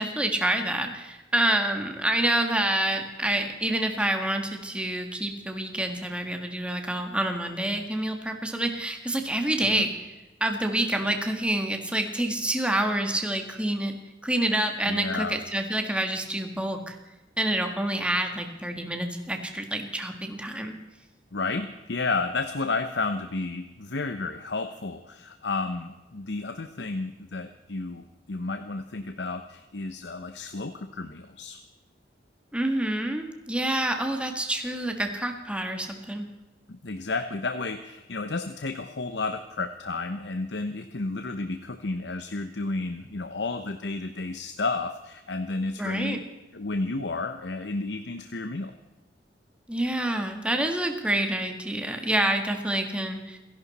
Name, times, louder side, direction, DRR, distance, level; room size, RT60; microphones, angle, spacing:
voice 1, 0.0-9.9 10.4-13.9 14.2-16.9 17.4-20.7 32.5-36.3 45.8-46.2 49.7-53.4, right 1 dB, 5° right, 4 dB, 1.6 m, -27 dB
voice 2, 14.9-15.4 21.3-31.6 33.9-34.0 36.7-46.2 46.5-48.7, left 3 dB, 70° left, 8 dB, 0.9 m, -32 dB
29.0 x 11.5 x 4.2 m, 1.1 s
head